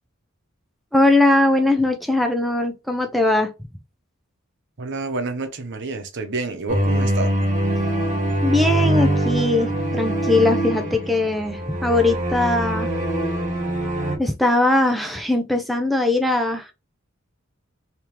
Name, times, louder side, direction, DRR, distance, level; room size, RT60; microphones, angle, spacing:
voice 1, 0.9-3.5 8.4-12.9 14.2-16.7, left 2 dB, ahead, 0.4 m, -20 dB
voice 2, 4.8-7.3, right 3 dB, 60° right, 0.9 m, -28 dB
sound 1, 6.7-14.2, right 1 dB, 35° right, 1.7 m, -23 dB
3.6 x 2.9 x 3.0 m
head